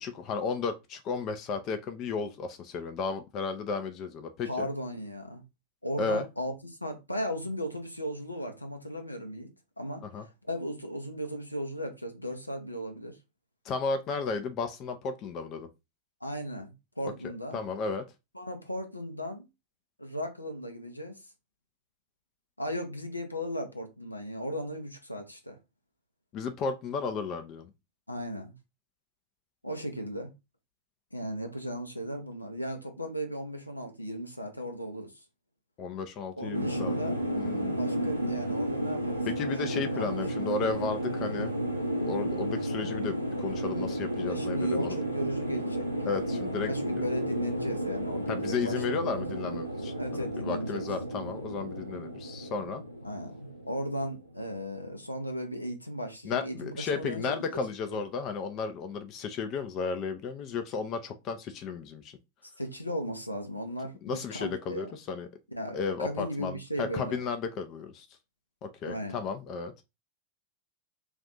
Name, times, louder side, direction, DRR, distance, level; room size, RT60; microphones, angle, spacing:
voice 1, 0.0-4.7 6.0-6.3 10.1-10.3 13.6-15.7 17.5-18.0 26.3-27.7 35.8-37.0 37.3-37.8 39.4-41.5 42.0-45.0 46.0-47.0 48.3-52.8 56.2-62.2 64.0-65.3 65.7-68.1 68.6-69.7, left 5 dB, 35° left, 0.5 m, -34 dB
voice 2, 4.4-5.4 5.8-9.5 9.8-13.2 16.2-17.6 18.3-19.5 20.0-21.2 22.6-25.6 28.1-28.5 29.6-30.3 31.1-35.1 36.4-37.2 37.7-39.3 39.6-40.1 40.3-40.6 42.1-42.4 44.3-45.9 46.3-49.1 50.0-50.9 53.0-57.3 57.9-58.0 62.6-64.9 65.5-67.2 68.9-69.2, equal, 85° left, 0.6 m, -36 dB
sound 1, 36.5-54.9, right 1 dB, 90° right, 0.5 m, -33 dB
2.5 x 2.4 x 3.9 m
figure-of-eight pair, 90°, 0 cm